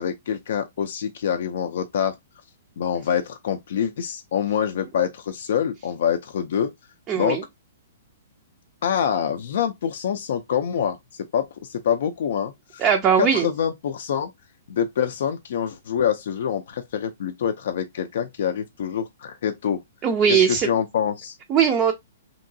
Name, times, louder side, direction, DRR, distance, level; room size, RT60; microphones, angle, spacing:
voice 1, 0.0-2.1 2.8-6.7 7.1-7.4 8.8-11.0 11.3-12.8 13.2-14.3 14.7-19.8 20.3-21.3, left 8 dB, 60° left, 0.4 m, -25 dB
voice 2, 7.1-7.4 12.8-13.5 20.0-20.7 21.5-21.9, right 7 dB, 20° right, 0.4 m, -19 dB
2.9 x 2.6 x 2.6 m
hypercardioid pair, 160°, 0 cm